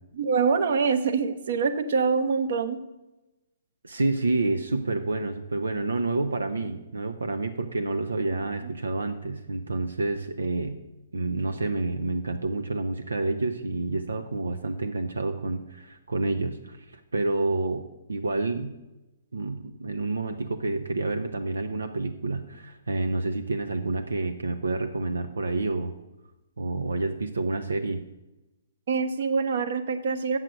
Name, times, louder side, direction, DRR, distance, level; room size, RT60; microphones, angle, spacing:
voice 1, 0.2-2.8 8.3-8.7 28.9-30.4, right 5 dB, 60° right, 9 dB, 0.9 m, -25 dB
voice 2, 3.8-10.8 11.1-17.8 18.1-18.7 19.3-25.9 26.6-28.0, right 2 dB, 85° right, 7 dB, 0.7 m, -29 dB
7.8 x 7.4 x 6.3 m, 1.0 s
figure-of-eight pair, 130°, 0 cm